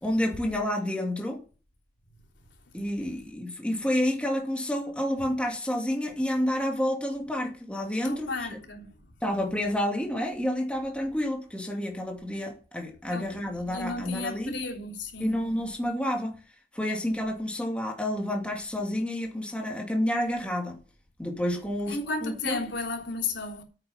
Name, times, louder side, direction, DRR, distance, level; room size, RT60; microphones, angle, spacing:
voice 1, 0.0-1.4 2.7-8.6 9.2-14.5 15.2-16.4 16.7-20.8 21.2-22.6, left 1 dB, 5° left, 2.5 m, -29 dB
voice 2, 8.0-8.9 13.1-15.4 21.9-23.6, left 3 dB, 80° left, 3.3 m, -33 dB
9.7 x 8.8 x 7.3 m
head